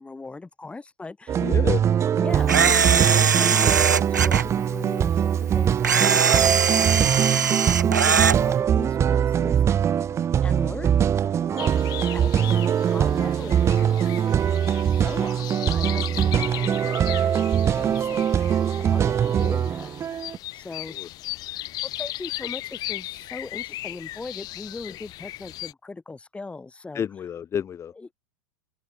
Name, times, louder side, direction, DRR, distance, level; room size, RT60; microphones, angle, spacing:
voice 1, 0.0-1.5 2.1-7.4 7.8-9.8 10.4-11.0 11.5-12.5 12.9-14.0 15.0-16.9 17.2-18.5 18.8-19.9 20.5-21.0 21.8-27.0 28.0-28.1, left 3 dB, 10° left, 7.4 m, -39 dB
sound 1, 1.3-20.4, right 9 dB, 30° right, 2.8 m, -22 dB
voice 2, 1.4-1.8 11.2-11.5 11.9-12.3 16.8-16.9 19.4-19.6 20.9-21.1 26.9-27.9, left 8 dB, 30° left, 3.8 m, -31 dB
Camera, 2.5-4.4 5.8-8.4, right 7 dB, 90° right, 1.9 m, -20 dB
sound 2, 11.6-25.7, left 16 dB, 45° left, 2.9 m, -37 dB
open air
hypercardioid pair, 95°, 9 cm